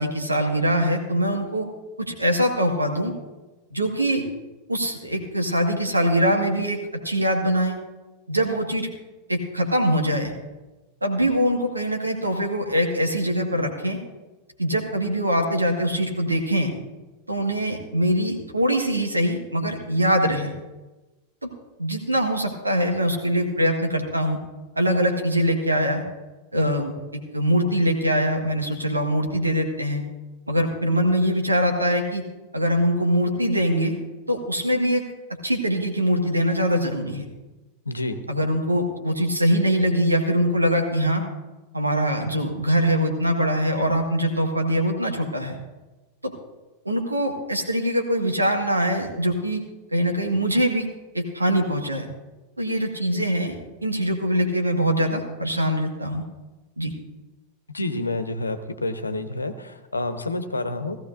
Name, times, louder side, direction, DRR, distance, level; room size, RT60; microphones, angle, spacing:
voice 1, 0.0-1.7 2.0-3.1 3.7-4.2 4.7-6.8 7.0-7.8 8.3-8.9 9.3-10.3 11.0-14.0 14.6-16.7 17.3-20.5 21.4-21.5 21.8-24.4 24.8-26.0 26.5-26.9 27.3-30.0 30.5-32.2 32.5-34.0 34.3-35.0 35.4-37.3 38.3-41.2 41.7-45.6 46.2-46.3 46.9-49.6 49.9-50.9 51.1-52.1 52.6-53.5 53.8-56.2 56.8-56.9, equal, 85° right, 2 dB, 1.8 m, -23 dB
voice 2, 37.8-38.2 57.7-61.0, left 2 dB, 80° left, 10 dB, 0.9 m, -28 dB
17.0 x 15.0 x 2.6 m, 1.1 s
figure-of-eight pair, 90°, 0 cm